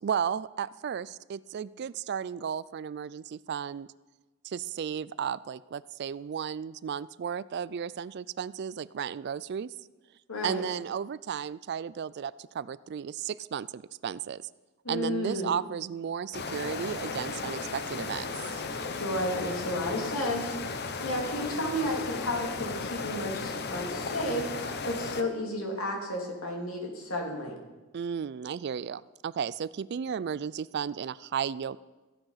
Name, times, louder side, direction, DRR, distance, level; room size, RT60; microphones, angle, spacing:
voice 1, 0.0-3.9 4.4-9.7 10.4-14.4 14.9-18.6 27.9-31.8, right 7 dB, 50° right, 19 dB, 0.3 m, -34 dB
voice 2, 10.3-10.6 14.8-15.5 18.8-27.6, left 1 dB, 85° left, 1 dB, 2.9 m, -32 dB
sound 1, 16.3-25.2, left 4 dB, 50° left, 0.8 m, -35 dB
15.0 x 9.0 x 5.7 m, 1.2 s
head